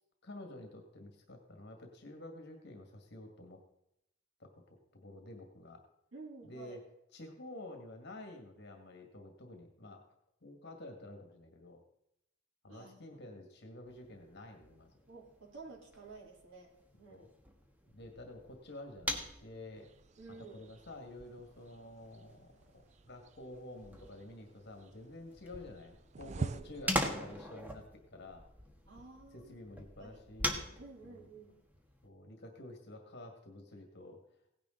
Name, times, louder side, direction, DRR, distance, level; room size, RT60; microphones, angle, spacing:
voice 1, 0.2-3.6 4.4-5.8 6.4-6.8 7.1-10.0 10.4-11.8 12.6-14.9 17.1-17.3 17.9-19.9 20.5-28.4 29.3-30.7 31.0-31.3 32.0-34.2, left 1 dB, 55° left, 3 dB, 2.0 m, -50 dB
voice 2, 6.1-6.8 12.7-13.2 15.1-17.3 20.2-20.7 28.9-29.6 30.0-30.2 30.8-31.6, right 3 dB, 85° right, -3 dB, 3.5 m, -52 dB
sound 1, 13.9-32.1, equal, 10° right, 1.5 m, -44 dB
sound 2, 19.8-26.9, right 4 dB, 35° right, 0.4 m, -47 dB
17.0 x 10.0 x 3.9 m, 0.82 s
head